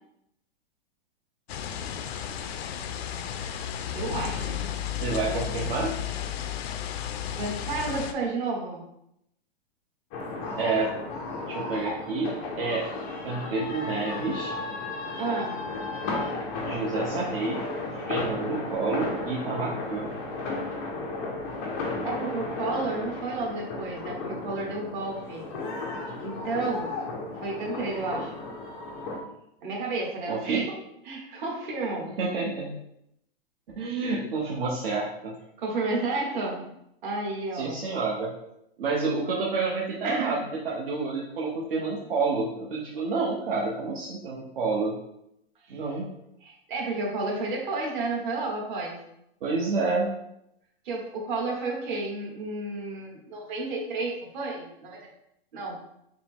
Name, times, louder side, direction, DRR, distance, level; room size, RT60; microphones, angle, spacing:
sound 1, 1.5-8.1, left 9 dB, 90° left, 0.5 m, -33 dB
voice 1, 3.9-4.6 5.2-5.7 7.4-8.8 15.2-15.6 22.0-25.5 26.2-26.9 27.4-28.3 29.6-30.7 31.0-32.1 35.6-36.7 37.0-37.8 40.0-40.3 45.7-46.0 46.4-49.0 50.8-55.1 55.5-55.8, right 3 dB, 50° right, -1 dB, 1.3 m, -31 dB
voice 2, 5.0-5.9 10.6-10.9 11.5-12.3 12.6-12.9 13.2-14.5 16.6-17.6 17.9-20.1 30.3-30.6 32.2-32.7 33.8-35.3 37.5-38.3 38.8-45.0 45.7-46.1 49.4-50.1, right 4 dB, 70° right, -4 dB, 0.9 m, -29 dB
sound 2, 10.1-29.2, left 3 dB, 15° left, 0.3 m, -34 dB
5.5 x 2.0 x 3.5 m, 0.78 s
supercardioid pair, 160°, 30 cm